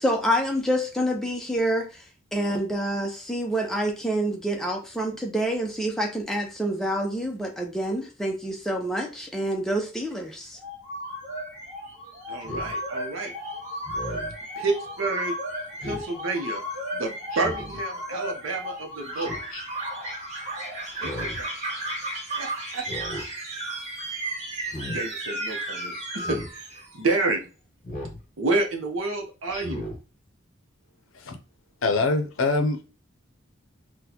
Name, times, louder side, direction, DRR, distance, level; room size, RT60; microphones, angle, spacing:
voice 1, 0.0-1.9 2.3-10.6, equal, ahead, 0.5 m, -27 dB
sound 1, 10.6-27.1, right 1 dB, 30° right, 1.4 m, -34 dB
voice 2, 12.3-13.3 14.6-15.4 15.8-16.6 16.9-19.4 21.0-21.5 22.4-22.8 24.9-27.5 28.4-29.9, right 3 dB, 75° right, 0.7 m, -29 dB
Speech synthesizer, 12.4-12.7 13.8-14.4 15.8-16.1 17.3-17.8 19.1-19.6 20.9-21.5 22.8-23.3 24.6-25.0 26.2-26.5 27.8-28.2 29.5-30.0, left 1 dB, 40° left, 0.9 m, -36 dB
voice 3, 31.8-32.8, left 3 dB, 75° left, 0.6 m, -24 dB
4.0 x 2.2 x 2.8 m
head